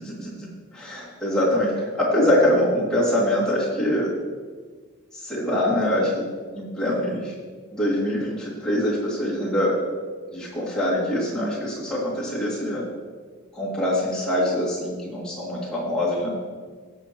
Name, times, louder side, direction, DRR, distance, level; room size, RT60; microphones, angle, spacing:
voice 1, 0.8-4.1 5.1-6.3 6.5-7.3 7.7-9.7 10.3-12.8 13.5-16.4, left 1 dB, 5° left, -9 dB, 2.6 m, -24 dB
17.5 x 7.0 x 3.1 m, 1.5 s
head